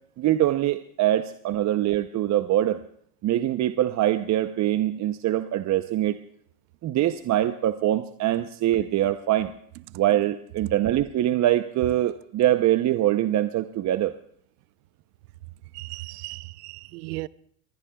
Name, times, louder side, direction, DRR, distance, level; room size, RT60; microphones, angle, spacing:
voice 1, 0.2-2.8 3.2-6.2 6.8-9.5 9.9-14.1, right 13 dB, 40° right, 0.7 m, -23 dB
voice 2, 15.7-17.3, right 20 dB, 85° right, 0.7 m, -36 dB
25.5 x 20.0 x 2.3 m
supercardioid pair, 105°, 45 cm